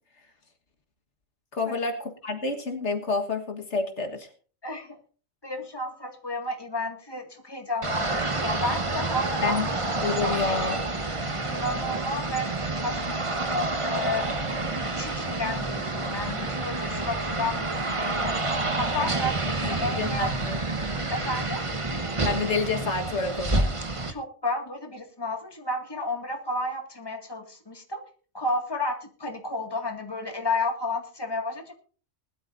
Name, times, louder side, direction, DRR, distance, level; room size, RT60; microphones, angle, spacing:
voice 1, 1.5-4.3 9.4-9.7 10.0-10.9 19.6-20.6 22.2-23.7, left 4 dB, 70° left, 4 dB, 1.9 m, -29 dB
voice 2, 4.6-5.0 5.4-9.6 10.1-10.7 11.4-14.4 15.0-18.4 18.8-20.3 21.1-21.7 24.1-28.0 28.3-31.7, left 2 dB, 20° left, 4 dB, 2.2 m, -32 dB
sound 1, 7.8-24.1, right 2 dB, 25° right, 1.2 m, -29 dB
20.5 x 12.0 x 2.7 m, 0.39 s
omnidirectional pair, 1.2 m